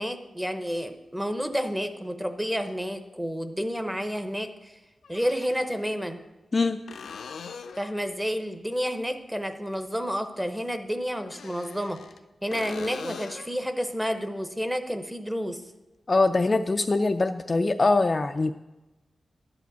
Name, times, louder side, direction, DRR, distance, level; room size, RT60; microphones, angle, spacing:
voice 1, 0.0-4.8 5.1-6.2 7.8-12.0 12.4-15.6, equal, 5° right, 8 dB, 0.7 m, -30 dB
sound 1, 1.5-1.6 3.7-3.8 5.0-5.8 6.9-8.0 11.2-12.2 12.5-13.6 17.2-17.3, left 5 dB, 90° left, 0.6 m, -41 dB
voice 2, 16.1-18.5, left 3 dB, 30° left, 6 dB, 0.3 m, -23 dB
11.5 x 5.0 x 8.0 m, 1.1 s
wide cardioid pair, 165°, 0 cm